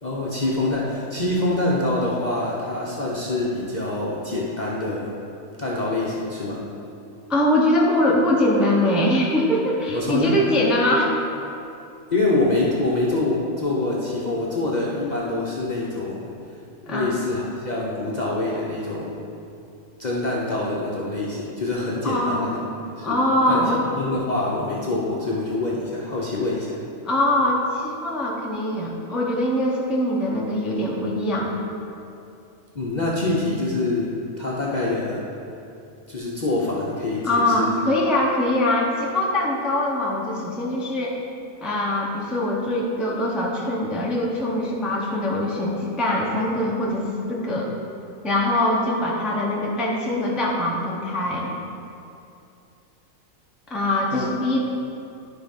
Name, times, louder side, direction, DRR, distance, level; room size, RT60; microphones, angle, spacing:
voice 1, 0.0-5.1 5.6-6.6 9.9-10.3 12.1-16.3 16.8-19.2 20.0-22.6 22.9-23.2 23.5-26.8 32.7-35.2 36.1-37.7 54.1-54.3, left 2 dB, 35° left, -5 dB, 0.9 m, -25 dB
voice 2, 7.3-11.1 16.9-17.2 22.0-22.5 23.0-23.8 27.0-31.5 37.2-41.2 41.6-47.7 48.2-51.5 53.7-54.6, left 1 dB, ahead, -3 dB, 0.7 m, -22 dB
11.5 x 4.0 x 5.4 m, 2.7 s
omnidirectional pair, 1.5 m